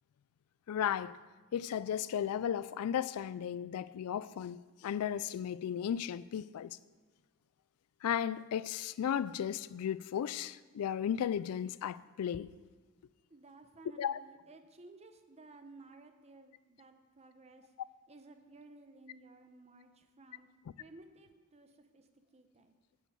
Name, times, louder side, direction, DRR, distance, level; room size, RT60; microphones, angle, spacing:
voice 1, 0.7-1.2 1.5-6.8 8.0-12.5 14.0-14.2, left 9 dB, 75° left, 0.3 m, -35 dB
voice 2, 13.3-17.7 18.1-20.5 20.8-22.8, right 2 dB, 30° right, 0.8 m, -56 dB
8.5 x 6.3 x 7.8 m
head